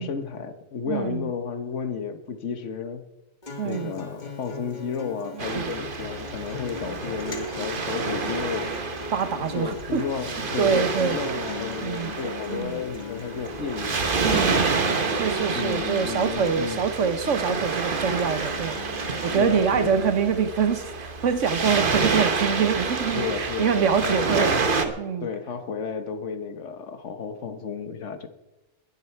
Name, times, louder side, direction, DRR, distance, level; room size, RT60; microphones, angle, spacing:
voice 1, 0.0-3.0 3.6-8.7 9.5-14.7 15.5-16.8 19.3-20.0 23.1-24.6 25.2-28.3, left 6 dB, 75° left, 9 dB, 1.5 m, -32 dB
voice 2, 0.9-1.3 3.6-3.9 5.3-5.7 6.8-7.0 9.1-10.1 10.4-11.2 11.7-12.1 12.5-12.8 14.2-14.6 15.1-25.3, right 6 dB, 85° right, 10 dB, 1.4 m, -25 dB
Acoustic guitar, 3.4-19.4, left 2 dB, 40° left, 1.6 m, -39 dB
Waves surf, 5.4-24.8, right 4 dB, 45° right, 1.3 m, -28 dB
20.5 x 10.0 x 4.5 m, 1.0 s
omnidirectional pair, 1.2 m